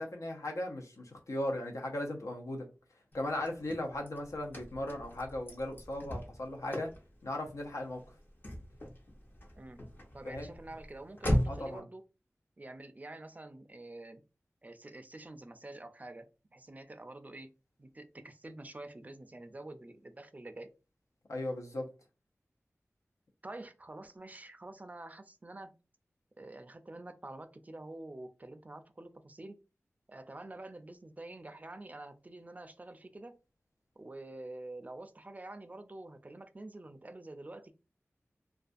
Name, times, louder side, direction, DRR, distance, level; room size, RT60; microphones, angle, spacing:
voice 1, 0.0-2.7 3.1-6.9 7.2-8.0 10.2-10.5 11.5-11.9 21.3-21.9, left 1 dB, 80° left, 0.6 m, -37 dB
Car / Slam, 3.1-11.8, equal, 40° left, 0.6 m, -38 dB
voice 2, 10.1-12.0 12.6-14.2 14.6-17.5 17.8-20.7 23.4-25.7 26.4-29.6 30.1-33.4 34.0-37.7, right 2 dB, 30° right, 0.3 m, -47 dB
2.3 x 2.2 x 2.5 m
wide cardioid pair, 70°, 5 cm